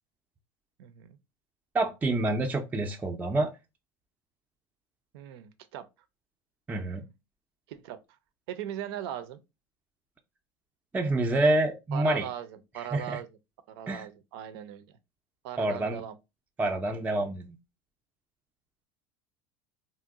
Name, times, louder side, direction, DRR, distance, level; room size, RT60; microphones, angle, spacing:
voice 1, 0.8-1.2 5.1-5.9 7.7-8.0 8.5-9.4 11.9-13.3 13.7-14.9 15.4-16.2, right 10 dB, 80° right, 0.5 m, -39 dB
voice 2, 1.7-3.5 6.7-7.0 10.9-12.2 12.9-13.2 13.9-14.0 15.6-16.0 16.6-17.4, right 2 dB, 15° right, 0.4 m, -27 dB
2.9 x 2.0 x 3.5 m
supercardioid pair, 110°, 13 cm